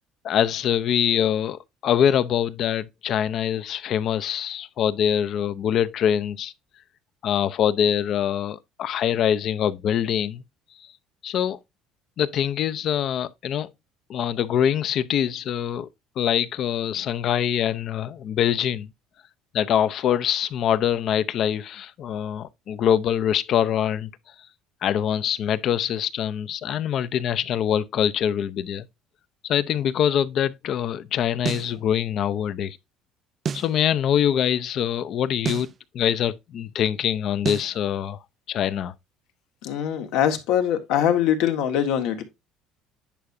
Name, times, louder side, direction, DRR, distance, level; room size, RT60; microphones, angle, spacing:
voice 1, 0.2-6.5 7.2-10.4 11.2-11.6 12.2-13.7 14.1-15.9 16.2-18.9 19.5-24.1 24.8-28.9 29.4-32.8 33.5-38.2 38.5-38.9, left 9 dB, 50° left, 0.5 m, -24 dB
sound 1, 31.4-31.7 33.4-33.7 35.4-35.7 37.4-37.7, right 7 dB, 35° right, 0.3 m, -29 dB
voice 2, 39.6-42.2, left 10 dB, 75° left, 1.5 m, -22 dB
10.0 x 4.8 x 2.6 m
cardioid pair, 135°, 0 cm